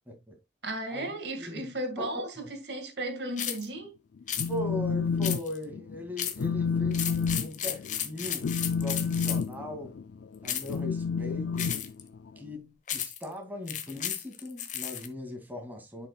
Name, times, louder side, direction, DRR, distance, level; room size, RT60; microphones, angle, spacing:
voice 1, 0.1-0.4 0.9-1.7 2.0-2.5 4.5-8.5 8.8-10.0 10.4-11.7 12.4-16.1, left 1 dB, 10° right, 2.3 m, -39 dB
voice 2, 0.6-4.0, right 1 dB, 70° right, 2.1 m, -35 dB
sound 1, 3.4-3.7 4.3-4.5 5.2-5.6 6.2-6.5 6.9-9.5 10.4-10.8 11.6-12.0 12.9-13.2 13.7-15.1, left 10 dB, 45° left, 1.1 m, -33 dB
Telephone, 4.2-5.4 5.7-6.0 6.4-12.5, left 5 dB, 80° left, 0.4 m, -30 dB
10.5 x 5.9 x 2.3 m
head